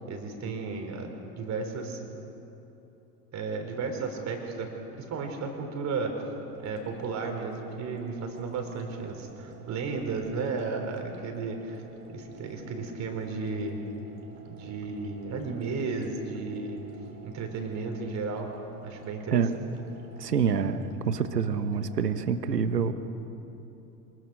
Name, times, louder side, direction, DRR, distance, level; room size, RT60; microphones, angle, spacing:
voice 1, 0.1-2.0 3.3-4.7 5.1-6.2 6.6-11.8 12.1-13.8 14.4-16.8 17.2-18.5 18.8-19.4, right 4 dB, 35° right, 3 dB, 4.7 m, -34 dB
sound 1, 6.5-22.0, right 6 dB, 60° right, 3.7 m, -50 dB
voice 2, 20.2-22.9, right 6 dB, 80° right, 11 dB, 1.3 m, -26 dB
26.5 x 20.5 x 6.6 m, 3.0 s
figure-of-eight pair, 80°, 48 cm